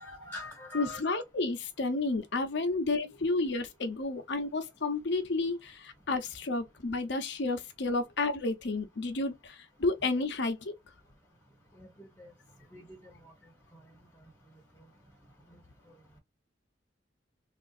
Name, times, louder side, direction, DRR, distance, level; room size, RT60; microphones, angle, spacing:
voice 1, 0.0-1.0 11.8-12.3 12.7-13.3, left 2 dB, 10° left, 1.0 m, -44 dB
voice 2, 0.7-10.7, left 3 dB, 65° left, 0.8 m, -31 dB
3.6 x 2.5 x 2.4 m
head